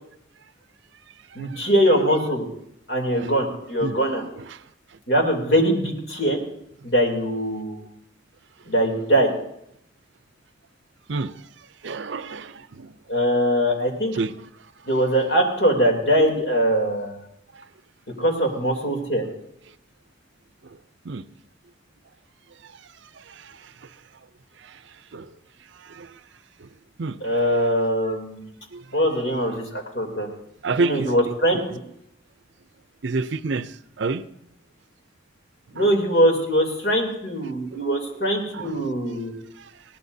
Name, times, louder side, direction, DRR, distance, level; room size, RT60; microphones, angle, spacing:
voice 1, 1.3-2.4 2.9-4.2 5.1-6.4 6.8-7.8 8.7-9.3 13.1-14.2 14.9-17.2 18.2-19.2 27.2-28.5 28.9-30.3 30.8-31.6 35.7-39.3, equal, 60° left, 3.1 m, -22 dB
voice 2, 3.8-4.6 11.1-11.4 11.8-13.0 14.1-14.4 17.5-17.6 21.0-21.2 23.1-23.9 24.6-24.8 25.1-25.3 25.8-26.2 26.6-26.7 27.0-27.2 28.7-29.0 30.6-31.1 33.0-34.2 35.7-35.9 37.7-37.8 38.5-38.8 39.6-39.7, right 3 dB, 70° right, 0.6 m, -30 dB
20.5 x 17.5 x 2.7 m
head